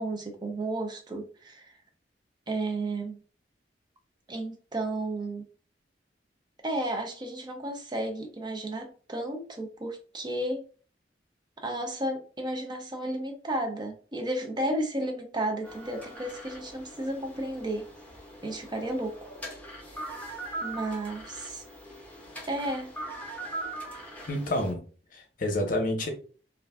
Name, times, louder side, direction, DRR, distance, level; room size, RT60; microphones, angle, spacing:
voice 1, 0.0-1.8 2.5-3.2 4.3-5.4 6.6-10.7 11.6-17.9 18.4-19.2 19.9-20.0 20.6-21.6 22.5-22.9, right 1 dB, 25° right, 4 dB, 0.4 m, -33 dB
sound 1, 15.6-24.7, right 1 dB, 10° left, 0.8 m, -41 dB
voice 2, 24.3-24.8 25.1-26.1, left 1 dB, 50° left, 4 dB, 0.7 m, -28 dB
2.4 x 2.2 x 3.4 m, 0.40 s
head